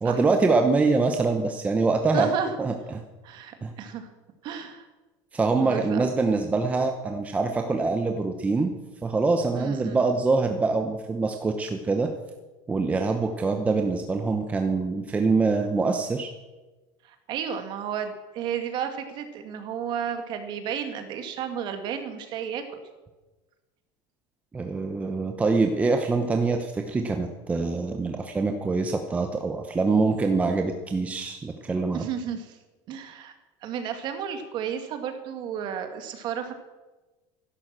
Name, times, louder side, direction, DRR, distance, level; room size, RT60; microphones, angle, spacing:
voice 1, 0.0-2.3 2.6-3.0 3.6-3.7 5.3-8.7 9.0-12.1 12.7-16.3 24.5-32.1, right 3 dB, 10° right, 5 dB, 0.9 m, -24 dB
voice 2, 2.1-2.5 3.2-4.1 4.4-4.9 5.5-6.0 9.6-10.0 17.0-22.8 31.9-32.6 32.9-33.3 33.6-36.5, right 8 dB, 40° right, 7 dB, 2.2 m, -32 dB
15.5 x 12.0 x 7.5 m, 1.2 s
cardioid pair, 170°, 12 cm